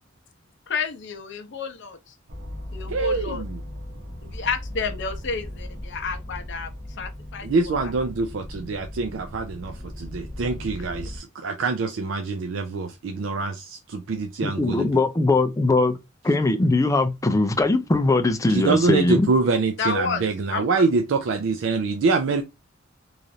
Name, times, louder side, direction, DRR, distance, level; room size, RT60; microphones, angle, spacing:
voice 1, 0.7-2.1 2.7-3.4 4.2-6.7 7.0-7.7 19.8-20.2 20.5-20.6, left 5 dB, 60° left, 0.6 m, -30 dB
sound 1, 2.3-11.2, left 1 dB, 45° right, 0.8 m, -37 dB
voice 2, 2.9-3.6 7.4-14.9 18.5-22.4, right 4 dB, 65° right, 0.4 m, -25 dB
voice 3, 14.4-16.0 16.2-19.3, left 2 dB, 15° left, 0.4 m, -21 dB
3.1 x 2.5 x 2.6 m
head